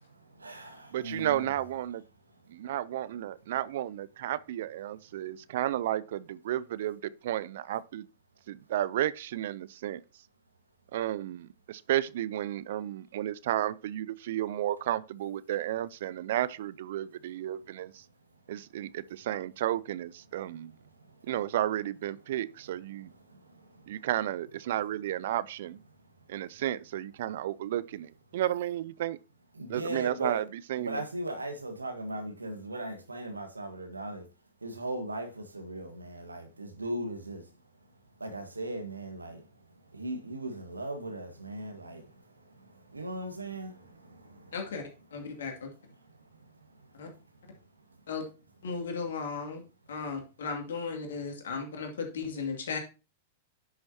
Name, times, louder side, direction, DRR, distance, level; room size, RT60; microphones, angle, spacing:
voice 1, 0.4-1.5 29.6-30.4 30.8-34.2 34.6-37.4 38.2-39.4 39.9-42.0 42.9-43.7, right 1 dB, 85° right, 1.5 m, -37 dB
voice 2, 0.9-2.0 2.5-8.1 8.5-10.0 10.9-18.0 18.5-20.7 21.2-23.1 23.9-25.8 26.3-29.2 29.7-30.4 30.7-31.0, right 12 dB, 60° right, 0.4 m, -32 dB
voice 3, 44.5-44.8 45.1-45.7 47.0-47.1 48.1-48.2 48.6-49.6 49.9-52.8, left 5 dB, 70° left, 2.3 m, -35 dB
10.5 x 6.3 x 2.8 m
figure-of-eight pair, 100°, 0 cm